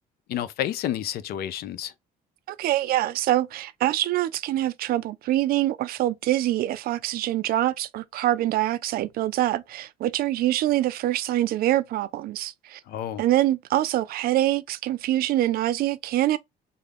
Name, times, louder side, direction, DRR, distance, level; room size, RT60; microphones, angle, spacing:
voice 1, 0.3-1.9 12.9-13.2, left 11 dB, 65° left, 0.4 m, -30 dB
voice 2, 2.5-12.8 13.2-16.4, right 14 dB, 60° right, 0.4 m, -25 dB
3.5 x 2.2 x 3.2 m
cardioid pair, 110°, 17 cm